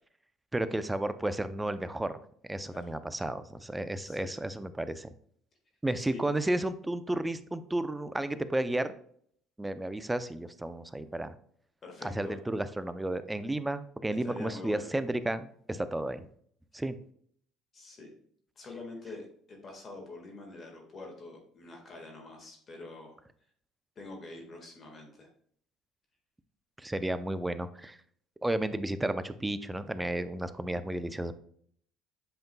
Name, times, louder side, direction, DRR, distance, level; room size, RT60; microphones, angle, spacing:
voice 1, 0.5-5.1 5.8-8.9 9.6-11.3 12.0-16.3 16.7-17.0 26.8-28.0 28.4-31.4, right 1 dB, 10° right, 12 dB, 0.5 m, -32 dB
voice 2, 4.0-4.4 6.1-6.2 11.8-12.4 14.2-14.9 17.7-18.1 18.5-23.2 23.9-25.3, left 2 dB, 35° left, 1 dB, 1.7 m, -45 dB
7.9 x 5.2 x 2.3 m, 0.62 s
supercardioid pair, 100°, 0 cm